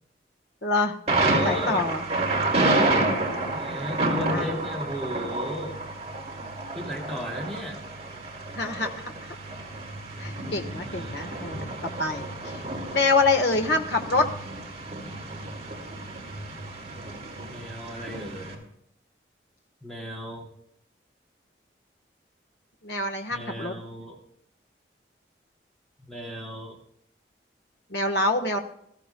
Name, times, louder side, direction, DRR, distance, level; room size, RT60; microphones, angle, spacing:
voice 1, 0.6-1.0 1.3-2.0 2.7-3.8 4.3-4.5 8.5-9.4 10.2-11.7 12.0-12.6 12.9-14.2 22.8-23.7 27.9-28.6, left 3 dB, 80° left, 4 dB, 1.4 m, -26 dB
Thunder, 1.1-18.5, right 2 dB, 35° right, 2.6 m, -30 dB
voice 2, 1.3-1.8 2.5-3.1 3.5-5.8 6.7-7.8 10.9-11.4 17.5-18.7 19.8-20.5 23.3-24.2 26.1-26.8, equal, 5° left, -2 dB, 2.7 m, -35 dB
21.0 x 14.5 x 2.3 m, 0.72 s
head